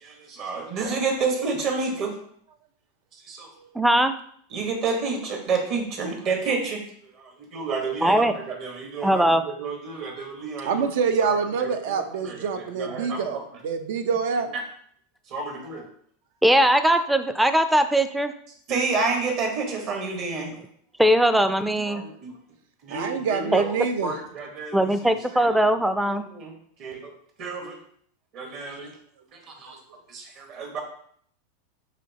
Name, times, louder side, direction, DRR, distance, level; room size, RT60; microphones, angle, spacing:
voice 1, 0.0-2.1 3.3-3.5 4.5-6.8 7.2-10.9 12.2-13.4 15.3-15.8 18.7-20.5 21.8-22.3 22.8-23.7 24.0-25.1 26.1-26.5 26.8-27.1 27.4-27.8 28.3-28.9 29.5-29.8 30.1-30.8, right 4 dB, 50° right, 2 dB, 1.3 m, -30 dB
voice 2, 3.8-4.1 8.0-8.3 9.0-9.4 16.4-18.3 21.0-22.0 23.5-23.6 24.7-26.3, right 1 dB, 5° right, 10 dB, 0.4 m, -20 dB
voice 3, 10.6-14.5 22.9-24.1, right 5 dB, 70° right, 8 dB, 0.6 m, -26 dB
5.0 x 3.3 x 2.9 m, 0.62 s
hypercardioid pair, 105°, 0 cm